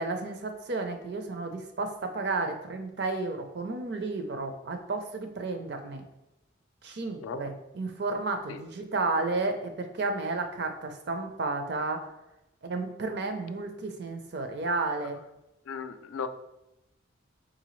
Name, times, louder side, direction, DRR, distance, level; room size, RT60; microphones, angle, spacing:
voice 1, 0.0-6.0 6.8-12.1 12.6-15.2, right 3 dB, 55° right, 6 dB, 0.5 m, -32 dB
voice 2, 15.7-16.3, left 6 dB, 90° left, 10 dB, 0.4 m, -36 dB
4.3 x 3.8 x 3.1 m, 0.92 s
head